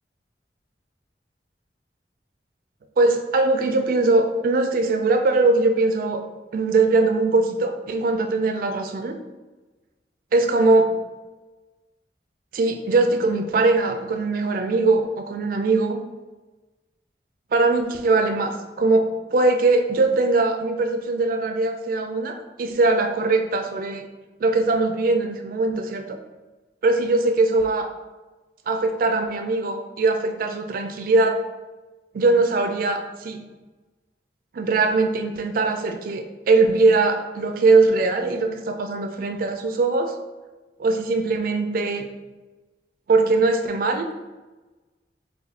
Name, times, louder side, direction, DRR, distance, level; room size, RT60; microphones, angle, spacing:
voice 1, 3.0-6.2 6.5-9.1 10.3-11.0 12.5-16.0 17.5-24.1 24.4-26.2 26.8-27.9 28.7-31.4 32.1-33.4 34.5-40.1 40.8-42.1 43.1-44.1, right 3 dB, 50° right, 5 dB, 0.3 m, -21 dB
2.4 x 2.2 x 4.0 m, 1.2 s
head